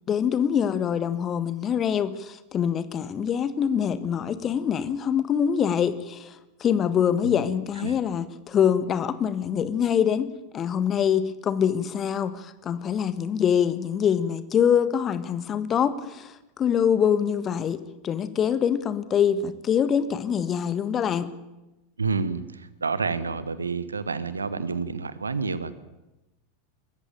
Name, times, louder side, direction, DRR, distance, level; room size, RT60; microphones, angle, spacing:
voice 1, 0.1-21.3, left 8 dB, 30° left, 13 dB, 1.5 m, -24 dB
voice 2, 22.0-25.7, right 4 dB, 80° right, 15 dB, 1.2 m, -29 dB
24.0 x 14.5 x 9.0 m, 1.0 s
figure-of-eight pair, 85°, 0 cm